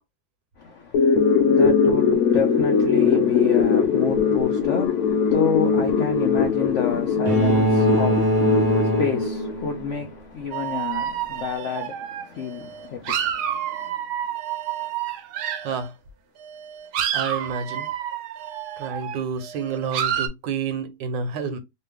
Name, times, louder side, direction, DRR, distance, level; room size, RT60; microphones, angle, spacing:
voice 1, 0.6-13.9, left 6 dB, 90° left, 0.6 m, -30 dB
sound 1, 0.9-10.0, left 5 dB, 65° left, 1.0 m, -20 dB
sound 2, 7.3-9.8, right 3 dB, 35° right, 0.8 m, -23 dB
sound 3, 10.5-15.9 16.4-20.3, right 10 dB, 70° right, 1.0 m, -29 dB
voice 2, 17.1-17.9 18.8-21.6, right 5 dB, 90° right, 1.4 m, -29 dB
3.2 x 2.2 x 3.3 m
omnidirectional pair, 2.0 m